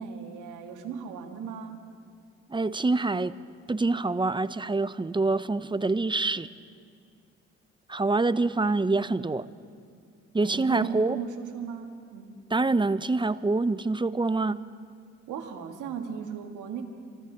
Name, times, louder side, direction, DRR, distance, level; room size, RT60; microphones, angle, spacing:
voice 1, 0.0-1.8 10.4-12.3 15.3-16.8, right 7 dB, 80° right, 5 dB, 1.7 m, -36 dB
voice 2, 2.5-3.4 3.7-6.5 7.9-9.5 10.3-11.2 12.5-14.6, right 3 dB, 15° right, 15 dB, 0.6 m, -26 dB
26.5 x 13.5 x 4.0 m, 2.3 s
supercardioid pair, 50°, 30 cm